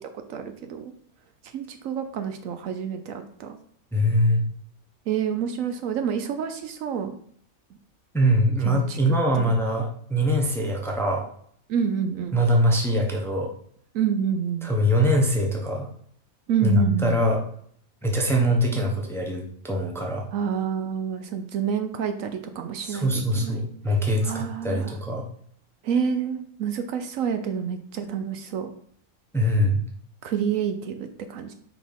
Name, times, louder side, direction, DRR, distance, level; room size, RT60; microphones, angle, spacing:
voice 1, 0.3-0.9 1.5-3.6 5.1-7.1 8.6-9.0 9.3-9.5 11.7-12.4 13.9-14.7 16.5-17.2 20.3-24.0 24.2-25.0 25.8-28.7 30.2-31.5, right 7 dB, 70° right, 8 dB, 1.0 m, -28 dB
voice 2, 3.9-4.5 8.1-11.2 12.3-13.5 14.6-15.9 16.6-17.4 18.0-20.2 22.8-25.3 29.3-29.8, equal, ahead, 0 dB, 0.9 m, -23 dB
4.6 x 4.1 x 5.3 m, 0.62 s
omnidirectional pair, 1.5 m